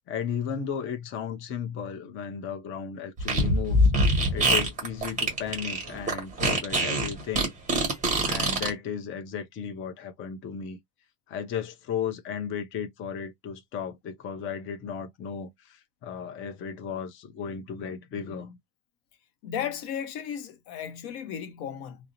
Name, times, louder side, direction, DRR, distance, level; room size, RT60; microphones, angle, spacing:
voice 1, 0.1-3.9 4.3-7.5 8.2-10.8 11.3-18.6, left 7 dB, 30° left, 0.4 m, -35 dB
Fart, 3.2-8.7, right 1 dB, 20° right, 1.1 m, -24 dB
voice 2, 19.4-22.0, left 8 dB, 70° left, 0.7 m, -34 dB
2.4 x 2.0 x 2.7 m
cardioid pair, 150°, 40 cm